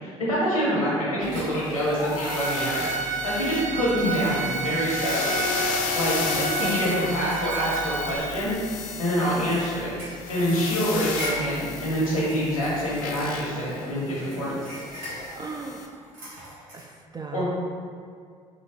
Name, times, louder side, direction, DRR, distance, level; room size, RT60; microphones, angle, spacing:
voice 1, 0.0-5.5 5.9-8.5 9.0-9.9 10.3-14.6 17.3-17.5, equal, 85° left, -6 dB, 1.0 m, -26 dB
voice 2, 0.9-1.9 4.0-5.0 6.3-7.3 9.3-9.6 15.3-16.1 16.7-17.5, right 3 dB, 25° right, 2 dB, 0.4 m, -37 dB
sound 1, 1.2-15.9, left 5 dB, 55° left, 0.5 m, -34 dB
sound 2, 1.3-2.8 3.3-3.4 3.7-4.6 5.1-5.3 5.7-5.8 6.3-8.7 9.1-13.6 14.1-16.8, equal, 80° right, 1.1 m, -40 dB
Bowed string instrument, 2.2-8.2, right 4 dB, 55° right, 1.0 m, -30 dB
3.8 x 3.0 x 4.4 m, 2.2 s
figure-of-eight pair, 50°, 17 cm